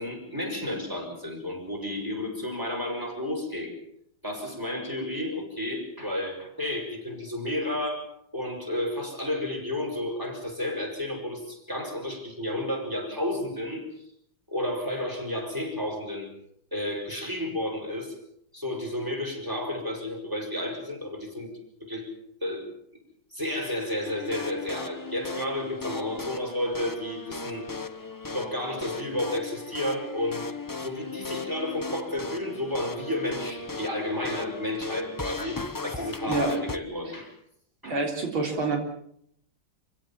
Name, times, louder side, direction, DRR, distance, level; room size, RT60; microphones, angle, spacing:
voice 1, 0.0-3.7 4.2-8.1 8.3-13.8 14.5-16.3 16.7-18.1 18.5-21.5 21.8-22.1 22.4-22.7 23.3-27.6 28.3-30.5 30.7-37.3 37.8-38.0, left 1 dB, 10° right, 2 dB, 6.1 m, -32 dB
sound 1, 24.0-36.8, left 3 dB, 30° left, 0.3 m, -37 dB
voice 2, 37.8-38.8, right 3 dB, 85° right, 2 dB, 4.5 m, -27 dB
26.5 x 16.5 x 7.3 m, 0.70 s
omnidirectional pair, 2.2 m